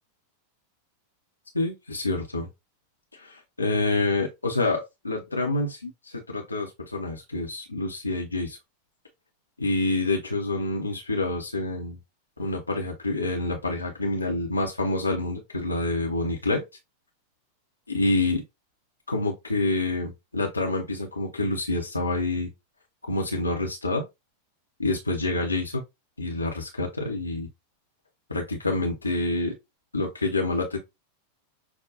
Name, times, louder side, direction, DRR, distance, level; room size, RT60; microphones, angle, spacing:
voice 1, 1.5-2.5 3.1-8.6 9.6-12.0 12.4-16.6 17.9-18.4 19.1-22.5 23.0-24.0 24.8-25.8 26.2-27.5 28.3-29.6 29.9-30.8, left 2 dB, 80° left, 0.7 m, -27 dB
6.0 x 2.2 x 2.5 m
figure-of-eight pair, 90°, 0 cm